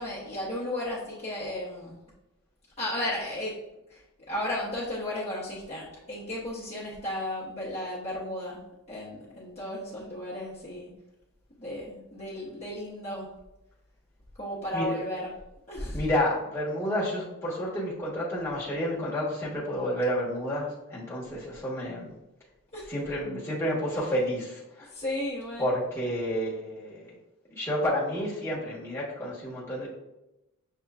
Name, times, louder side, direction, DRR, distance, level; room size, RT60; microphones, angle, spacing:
voice 1, 0.0-2.0 2.8-3.6 3.9-4.0 4.3-8.6 8.9-10.9 11.6-13.3 14.4-15.3 15.7-16.0 22.7-22.9 23.9-24.1 24.9-25.7, left 1 dB, 30° left, -8 dB, 0.9 m, -34 dB
voice 2, 15.9-22.1 22.9-24.9 25.6-27.1 27.5-29.9, equal, 10° left, -7 dB, 1.1 m, -30 dB
6.5 x 2.9 x 2.4 m, 0.93 s
head